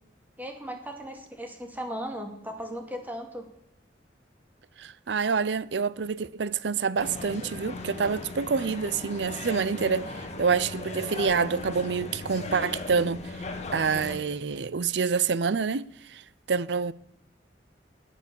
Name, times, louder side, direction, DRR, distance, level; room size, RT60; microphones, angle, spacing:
voice 1, 0.4-3.5, equal, 10° right, 2.4 m, -37 dB
voice 2, 4.8-13.3 13.7-16.2 16.5-16.9, right 5 dB, 75° right, 0.6 m, -27 dB
sound 1, 7.0-14.2, left 2 dB, 40° left, 1.9 m, -37 dB
17.5 x 10.0 x 7.0 m
head